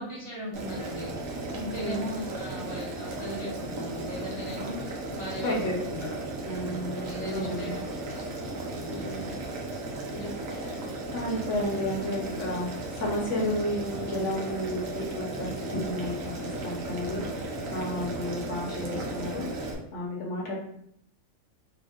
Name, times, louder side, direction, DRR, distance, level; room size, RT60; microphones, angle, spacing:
voice 1, 0.0-6.0 6.4-8.3 8.6-9.3, equal, 40° right, -6 dB, 0.5 m, -39 dB
Boiling, 0.5-19.7, right 2 dB, 70° right, 1.0 m, -35 dB
voice 2, 5.4-6.1 6.4-7.7 8.9-9.4 10.1-20.6, left 1 dB, 60° left, -2 dB, 1.1 m, -33 dB
3.5 x 2.1 x 3.5 m, 0.72 s
omnidirectional pair, 1.5 m